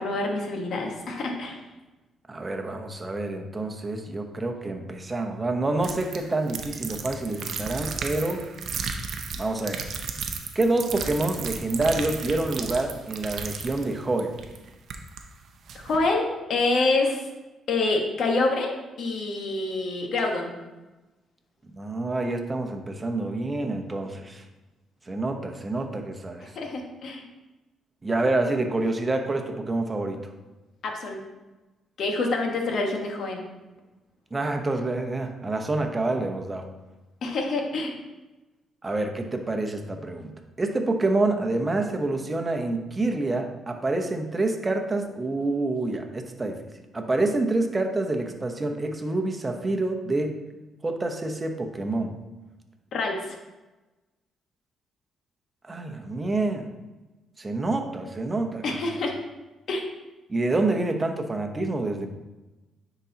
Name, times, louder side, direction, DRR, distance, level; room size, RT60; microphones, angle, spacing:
voice 1, 0.0-1.6 15.7-17.2 17.7-20.5 26.5-27.2 30.8-31.2 32.0-33.5 37.2-37.9 52.9-53.4 58.6-59.1 59.7-59.8, left 3 dB, 65° left, 2 dB, 1.2 m, -26 dB
voice 2, 2.3-8.4 9.4-9.8 10.5-14.4 21.7-24.5 25.0-26.5 28.0-30.3 34.3-36.7 38.8-46.7 46.9-50.3 50.8-52.1 55.7-56.7 57.4-58.8 60.3-62.1, right 2 dB, 25° right, 4 dB, 0.8 m, -27 dB
sound 1, 5.8-15.2 15.7-16.0, right 5 dB, 65° right, 0.6 m, -34 dB
9.7 x 4.0 x 2.8 m, 1.1 s
cardioid pair, 90°, 0 cm